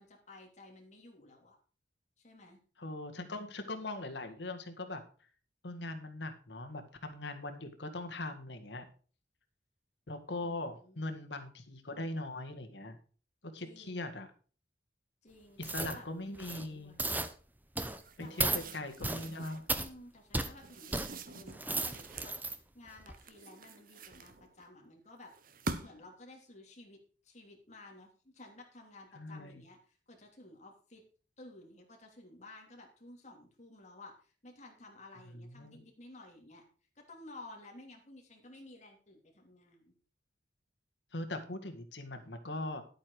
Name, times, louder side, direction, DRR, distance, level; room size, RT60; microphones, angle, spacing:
voice 1, 0.0-1.6 2.2-2.6 10.4-11.0 13.6-14.2 15.2-16.1 16.4-17.1 18.2-18.9 19.7-25.3 25.8-31.0 31.4-36.6 37.0-39.9, left 2 dB, 40° left, 1 dB, 3.1 m, -54 dB
voice 2, 2.8-5.0 5.6-8.9 10.1-13.0 13.4-14.3 15.6-17.0 18.2-19.7 29.1-29.6 35.3-35.8 41.1-42.8, left 2 dB, 85° left, 6 dB, 1.9 m, -40 dB
sound 1, 15.6-16.0 16.3-16.7 17.0-17.3 17.8-18.0 18.4-18.6 19.0-19.3 19.7-19.9 20.3-20.5 20.9-21.1 21.5-22.6 23.0-23.1, right 2 dB, 10° right, 0.8 m, -34 dB
sound 2, 18.0-19.7 20.6-22.4 23.1-24.7 25.3-26.1, right 3 dB, 55° right, 1.0 m, -45 dB
11.0 x 8.8 x 4.8 m, 0.38 s
head